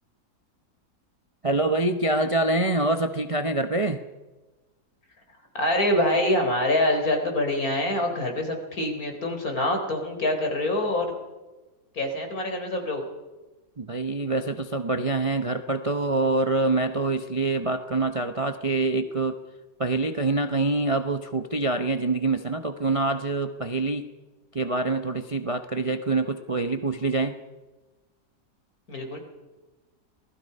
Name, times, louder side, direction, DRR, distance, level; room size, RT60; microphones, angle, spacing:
voice 1, 1.4-4.0 13.8-19.4 19.8-24.0 24.5-27.3, right 2 dB, 30° right, 7 dB, 0.7 m, -25 dB
voice 2, 5.5-11.1 11.9-13.0 28.9-29.2, left 1 dB, 60° left, 3 dB, 4.3 m, -25 dB
26.5 x 19.0 x 5.5 m, 1.2 s
omnidirectional pair, 1.8 m